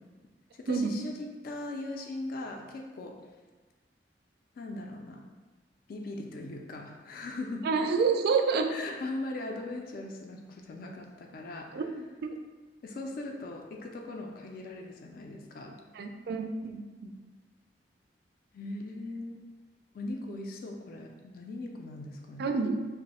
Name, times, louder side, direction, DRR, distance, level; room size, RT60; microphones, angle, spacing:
voice 1, 0.6-3.2 4.6-5.2 5.9-7.7 8.5-11.8 12.8-15.8 18.5-19.4 19.9-22.5, left 2 dB, 55° left, 2 dB, 0.3 m, -39 dB
voice 2, 7.6-8.7 11.7-12.3 15.9-17.1 22.4-22.9, right 5 dB, 60° right, 5 dB, 0.3 m, -28 dB
3.0 x 2.0 x 4.0 m, 1.3 s
head